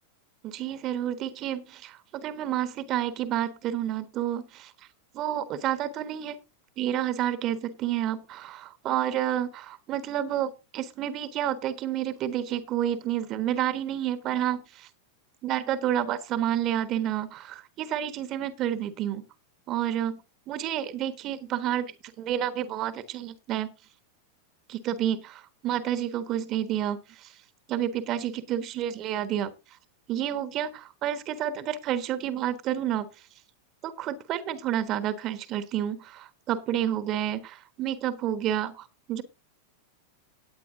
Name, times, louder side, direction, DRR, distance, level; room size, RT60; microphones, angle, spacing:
voice 1, 0.4-4.7 5.1-6.4 6.8-14.9 15.4-19.2 19.7-20.2 20.5-21.9 22.2-23.7 24.7-27.3 27.7-29.5 30.1-33.1 33.8-39.2, right 11 dB, 35° right, 12 dB, 1.3 m, -30 dB
18.0 x 9.0 x 2.7 m, 0.27 s
figure-of-eight pair, 90°, 0 cm